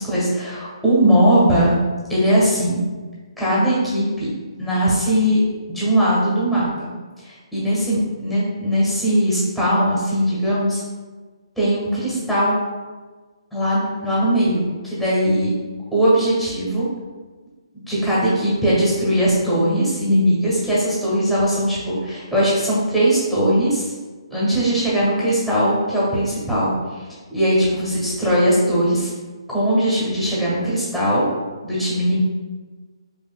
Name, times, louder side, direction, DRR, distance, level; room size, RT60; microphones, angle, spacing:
voice 1, 0.0-1.8 2.1-2.8 3.4-4.3 4.6-5.4 5.7-6.9 7.2-10.8 11.6-12.5 13.5-15.5 15.9-16.9 17.9-23.8 24.3-26.7 27.3-29.1 29.5-31.2 31.6-32.2, equal, ahead, -8 dB, 1.4 m, -19 dB
5.4 x 3.3 x 2.2 m, 1.3 s
hypercardioid pair, 150°, 3 cm